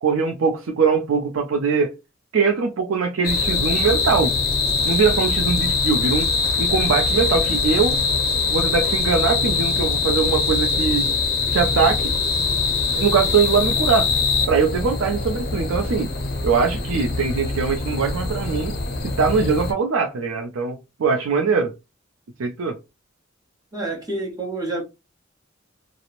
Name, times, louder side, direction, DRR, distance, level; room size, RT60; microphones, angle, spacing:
voice 1, 0.0-2.0 2.3-4.4 4.8-6.3 6.6-8.0 8.5-11.1 11.5-12.1 12.9-14.1 14.5-16.1 16.4-18.7 19.2-21.7 22.4-22.8, right 5 dB, 90° right, 0.4 m, -21 dB
sound 1, 3.2-19.7, left 4 dB, 50° left, 0.5 m, -23 dB
voice 2, 23.7-24.8, right 2 dB, 20° right, 1.0 m, -28 dB
2.9 x 2.0 x 2.4 m
head